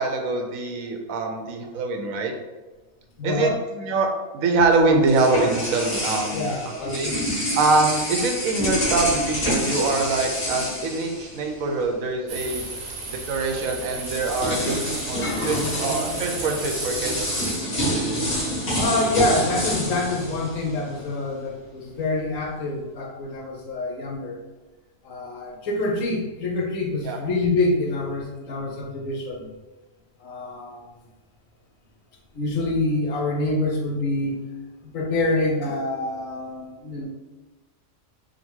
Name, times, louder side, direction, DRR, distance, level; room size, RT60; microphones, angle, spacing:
voice 1, 0.0-2.3 3.2-3.5 3.8-4.1 4.3-7.1 7.5-12.6 13.1-14.8 15.1-17.4 27.0-27.2, right 3 dB, 80° right, 3 dB, 1.0 m, -24 dB
voice 2, 3.2-3.6 6.3-7.2 14.4-15.9 18.8-24.4 25.0-29.5 30.2-30.8 32.3-34.4 34.9-37.1, left 2 dB, 70° left, 0 dB, 1.1 m, -26 dB
sound 1, 4.6-11.8 12.1-12.3 13.4-13.5 14.0-21.1, equal, 45° left, 1.7 m, -28 dB
sound 2, 12.3-17.6, right 3 dB, 50° right, 0.8 m, -35 dB
3.9 x 2.2 x 4.4 m, 1.2 s
omnidirectional pair, 1.5 m